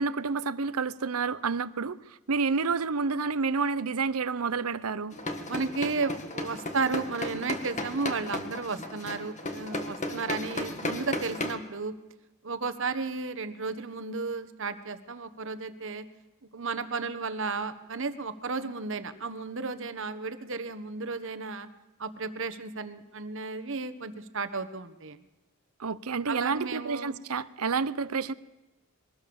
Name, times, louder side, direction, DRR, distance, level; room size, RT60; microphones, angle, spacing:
voice 1, 0.0-2.0 2.3-5.2 25.8-28.3, right 4 dB, 90° right, 16 dB, 0.8 m, -29 dB
sound 1, 5.1-11.5, left 1 dB, 35° left, 1.8 m, -35 dB
voice 2, 5.5-11.9 12.4-16.1 16.5-21.7 22.0-25.2 26.2-27.1, right 4 dB, 60° right, 11 dB, 1.3 m, -33 dB
22.5 x 18.5 x 7.1 m, 1.0 s
head